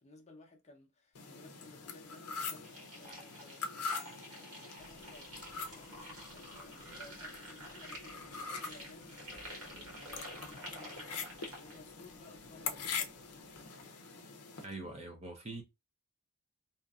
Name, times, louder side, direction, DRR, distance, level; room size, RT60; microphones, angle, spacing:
voice 1, 0.0-2.6 3.0-5.3 5.7-13.1, left 2 dB, 30° left, 0.7 m, -58 dB
sound 1, 1.1-14.6, left 5 dB, 85° left, 0.6 m, -44 dB
sound 2, 2.6-11.8, equal, 75° right, 1.4 m, -50 dB
sound 3, 4.8-13.7, equal, 10° right, 0.9 m, -63 dB
voice 2, 14.6-15.6, right 2 dB, 30° right, 0.6 m, -43 dB
2.8 x 2.5 x 2.3 m
head